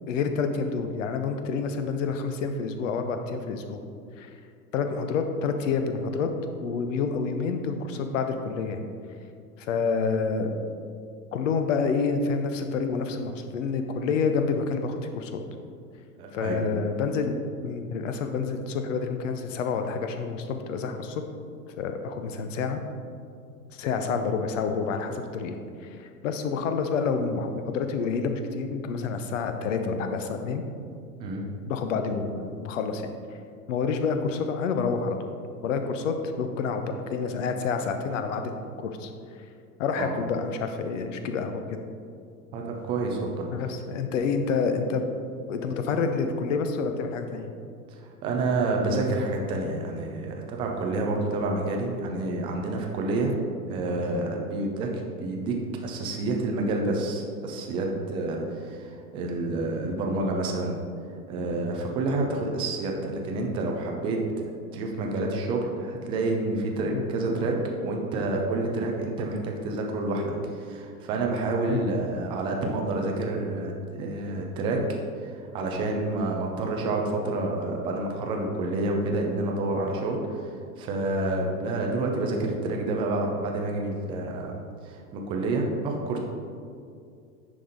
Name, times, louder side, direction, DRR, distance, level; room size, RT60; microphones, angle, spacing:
voice 1, 0.1-3.8 4.2-4.4 4.7-6.3 6.6-8.8 9.6-10.5 11.3-15.4 16.3-17.4 17.6-21.2 21.8-22.8 23.7-30.6 31.6-33.1 33.7-35.2 35.6-39.1 39.8-41.8 43.5-45.1 45.5-47.5 66.9-67.0 71.7-71.8, left 5 dB, 55° left, 6 dB, 0.8 m, -28 dB
voice 2, 16.2-16.6 31.2-31.4 40.0-40.2 42.5-43.5 48.0-53.3 53.7-60.8 61.3-64.2 64.7-67.6 67.8-74.8 75.2-80.5 80.8-84.6 84.8-86.2, right 2 dB, 10° right, 1 dB, 0.4 m, -28 dB
10.0 x 3.5 x 3.9 m, 2.3 s
figure-of-eight pair, 90°, 47 cm